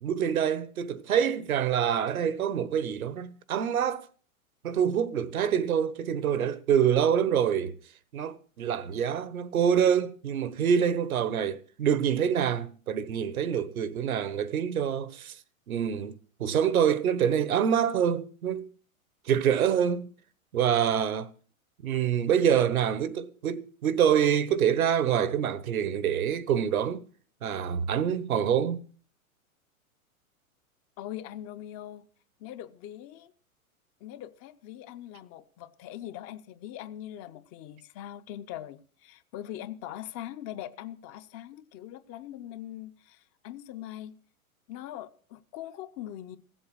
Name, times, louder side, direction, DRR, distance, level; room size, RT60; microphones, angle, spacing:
voice 1, 0.0-4.0 4.6-7.8 8.1-15.3 15.7-18.7 19.3-20.1 20.5-21.3 21.8-27.0 27.4-28.8, right 8 dB, 75° right, 1.1 m, -26 dB
voice 2, 31.0-32.1 32.4-33.3 34.0-44.2 44.7-46.4, left 12 dB, 35° left, 0.8 m, -42 dB
16.0 x 7.8 x 6.4 m
hypercardioid pair, 110°, 43 cm